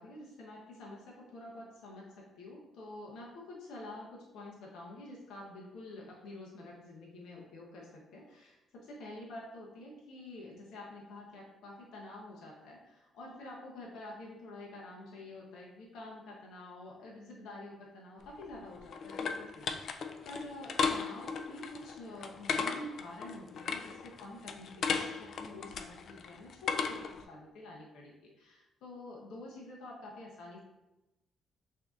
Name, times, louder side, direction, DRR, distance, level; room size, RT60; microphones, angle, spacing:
voice 1, 0.0-30.6, left 2 dB, 85° left, -3 dB, 0.8 m, -48 dB
sound 1, 18.2-27.2, left 5 dB, 60° left, 0.3 m, -36 dB
5.9 x 2.7 x 2.4 m, 0.99 s
cardioid pair, 90°, 0 cm